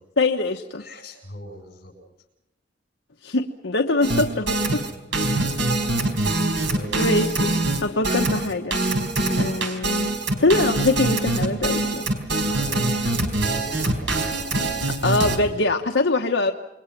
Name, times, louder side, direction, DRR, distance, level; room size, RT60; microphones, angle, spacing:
voice 1, 0.2-0.8 3.2-4.8 6.9-8.8 9.4-12.1 13.0-13.1 15.0-16.5, left 2 dB, 80° left, 3 dB, 1.1 m, -23 dB
voice 2, 0.8-1.9 4.1-4.3 5.1-5.6 6.2-7.0 12.4-14.7, equal, 55° left, 4 dB, 8.0 m, -38 dB
sound 1, 4.0-15.4, right 2 dB, 90° right, 4.2 m, -23 dB
28.5 x 22.5 x 6.0 m, 0.92 s
head